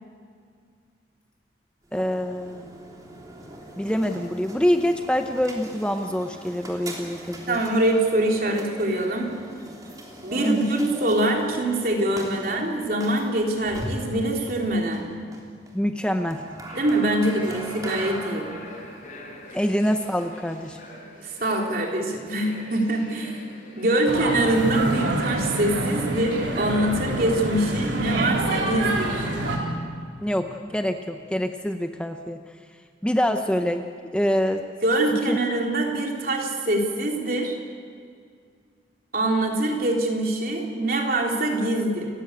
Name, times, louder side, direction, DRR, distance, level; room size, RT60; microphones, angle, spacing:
sound 1, 1.8-20.9, right 1 dB, 20° right, 3.3 m, -40 dB
voice 1, 1.9-2.7 3.8-7.6 10.4-10.7 15.7-16.4 19.5-20.8 30.2-32.4 33.0-33.9 34.1-34.7 35.3-35.4, equal, 5° left, 5 dB, 0.8 m, -25 dB
voice 2, 7.5-9.3 10.2-15.1 16.8-18.5 21.2-23.4 23.8-29.3 34.8-37.6 39.1-42.1, right 1 dB, 50° right, 0 dB, 3.7 m, -24 dB
sound 2, 16.7-25.7, left 1 dB, 45° left, 6.5 m, -45 dB
sound 3, 24.1-29.6, right 2 dB, 85° right, 4.1 m, -27 dB
29.5 x 15.0 x 8.4 m, 2.1 s
head